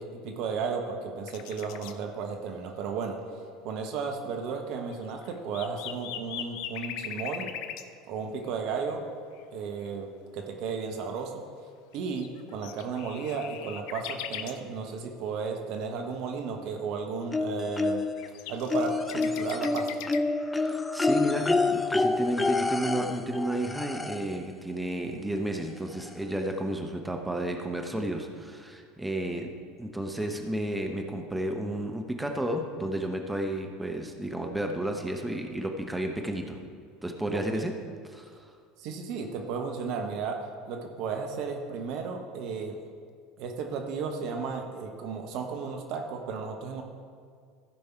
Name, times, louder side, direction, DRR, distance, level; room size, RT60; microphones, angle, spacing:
voice 1, 0.0-3.2 3.6-7.5 8.1-9.0 9.5-11.4 11.9-18.0 18.5-20.0 37.3-37.6 38.8-40.4 40.7-42.8 43.4-46.8, right 5 dB, 55° right, 3 dB, 1.1 m, -34 dB
sound 1, 1.3-1.9 4.9-7.9 8.5-8.6 8.9-9.0 9.4-9.5 9.8-9.9 11.9-14.6 17.8-20.2, left 10 dB, 60° left, 0.5 m, -40 dB
sound 2, 17.3-18.3 18.7-24.4 25.6-25.7 26.1-26.2, left 3 dB, 15° left, 0.5 m, -28 dB
voice 2, 20.5-29.5 29.8-36.6 37.0-37.7 38.1-38.5, right 1 dB, 5° right, 3 dB, 1.0 m, -32 dB
15.0 x 5.4 x 4.5 m, 2.1 s
figure-of-eight pair, 75°, 0 cm